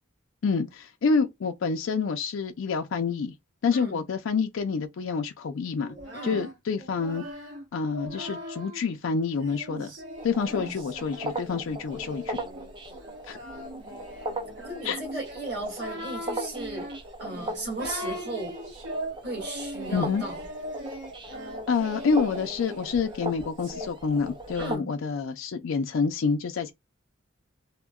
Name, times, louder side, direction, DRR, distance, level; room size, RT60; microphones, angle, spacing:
voice 1, 0.4-3.3 3.6-5.9 6.2-7.2 7.7-9.9 10.2-12.4 13.3-13.4 14.8-15.0 19.9-20.2 21.7-26.7, left 5 dB, 70° left, 0.4 m, -27 dB
Singing, 5.8-8.8 9.4-23.9, equal, 70° right, 1.3 m, -40 dB
sound 1, 10.2-24.8, right 1 dB, 25° right, 0.4 m, -39 dB
voice 2, 14.6-16.9 17.2-18.5 19.2-20.4 24.6-24.9, right 2 dB, 50° right, 1.6 m, -36 dB
3.6 x 2.1 x 2.2 m
head